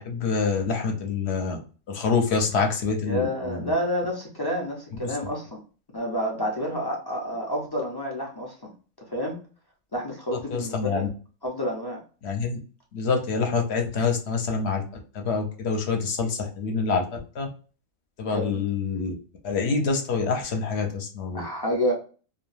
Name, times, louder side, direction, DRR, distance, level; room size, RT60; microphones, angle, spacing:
voice 1, 0.0-1.6 1.9-3.7 5.0-5.2 10.5-11.1 12.2-12.6 12.9-14.8 15.1-17.5 18.2-19.1 19.4-21.4, left 5 dB, 60° left, 3 dB, 0.9 m, -26 dB
voice 2, 3.0-5.6 5.9-8.7 9.1-9.4 9.9-11.1 11.4-12.0 18.3-18.6 21.3-21.9, equal, 40° left, -1 dB, 0.3 m, -29 dB
2.3 x 2.2 x 3.1 m, 0.37 s
omnidirectional pair, 1.4 m